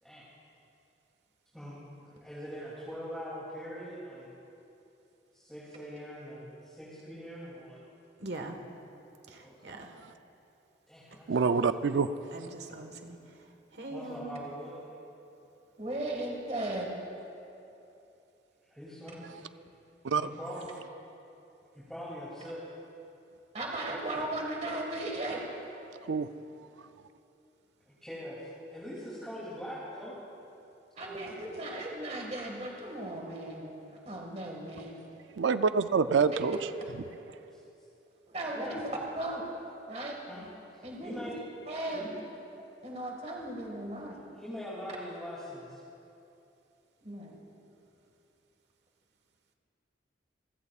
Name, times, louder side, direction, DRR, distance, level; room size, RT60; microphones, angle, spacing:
voice 1, 1.5-4.3 5.3-7.8 9.4-9.7 10.9-11.6 13.9-14.7 18.7-19.2 20.2-20.7 21.7-22.6 28.0-30.1 31.0-31.3 37.5-37.6 38.5-38.8 40.3-40.4 40.7-41.4 41.9-42.1 43.9-44.0 44.4-45.8, equal, 5° left, -9 dB, 2.7 m, -42 dB
voice 2, 8.2-8.6 9.3-9.9 12.3-14.4, right 2 dB, 70° right, 4 dB, 1.5 m, -43 dB
voice 3, 11.3-12.1 20.1-20.3 26.1-26.3 35.3-36.6, right 5 dB, 90° right, 11 dB, 0.5 m, -26 dB
voice 4, 15.8-16.9 23.5-25.4 31.0-35.0 36.3-36.4 38.3-38.9 39.2-39.5 39.9-40.2 40.8-41.3 41.7-42.1 42.8-44.2 47.0-47.4, right 1 dB, 35° right, -1 dB, 1.9 m, -37 dB
28.5 x 15.0 x 2.4 m, 2.8 s
head